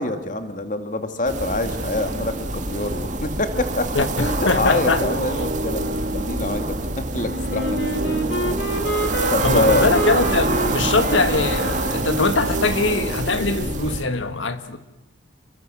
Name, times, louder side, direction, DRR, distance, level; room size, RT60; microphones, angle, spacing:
voice 1, 0.0-8.2 9.3-9.8, left 2 dB, 45° left, 2.4 m, -25 dB
sound 1, 1.3-14.0, right 2 dB, 40° right, 2.3 m, -26 dB
voice 2, 4.0-5.0 9.4-14.8, left 3 dB, 90° left, 1.8 m, -22 dB
sound 2, 5.0-13.9, right 1 dB, 60° right, 2.7 m, -31 dB
Wind instrument woodwind instrument, 7.5-12.2, equal, 65° left, 3.1 m, -28 dB
29.5 x 22.5 x 7.8 m
head